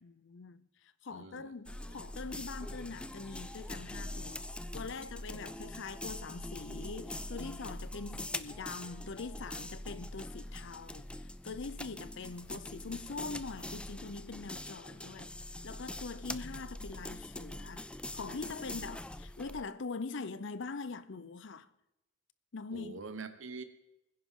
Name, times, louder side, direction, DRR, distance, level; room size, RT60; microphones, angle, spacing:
voice 1, 0.0-4.5 4.7-15.3 15.6-17.9 18.1-21.7 22.5-23.1, left 4 dB, 65° left, 0.6 m, -43 dB
voice 2, 1.1-1.5 22.7-23.6, right 4 dB, 65° right, 1.2 m, -44 dB
sound 1, 1.7-19.6, left 1 dB, 5° left, 0.3 m, -43 dB
21.5 x 10.5 x 3.8 m
head